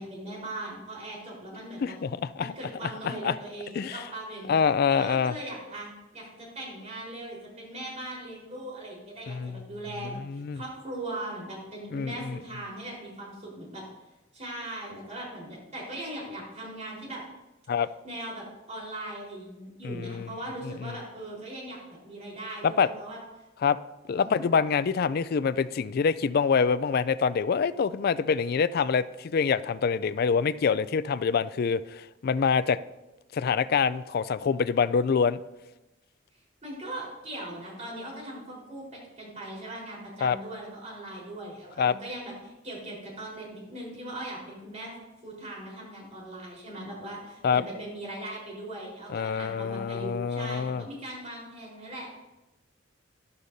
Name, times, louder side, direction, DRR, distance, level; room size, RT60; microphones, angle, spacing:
voice 1, 0.0-1.9 2.4-4.5 4.9-13.8 14.3-17.2 18.0-21.8 22.0-23.2 24.1-24.4 36.6-44.9 45.2-52.1, right 1 dB, 35° right, -3 dB, 4.2 m, -39 dB
voice 2, 1.8-2.5 3.0-3.3 3.7-4.0 4.5-5.4 9.3-9.6 10.2-10.6 11.9-12.4 17.7-17.9 19.8-20.3 20.8-20.9 22.6-22.9 23.6-23.8 24.1-32.8 33.3-35.4 40.2-40.4 41.8-41.9 47.4-47.6 49.1-50.8, left 6 dB, 55° left, 16 dB, 0.4 m, -26 dB
13.5 x 11.0 x 2.7 m, 1.0 s
head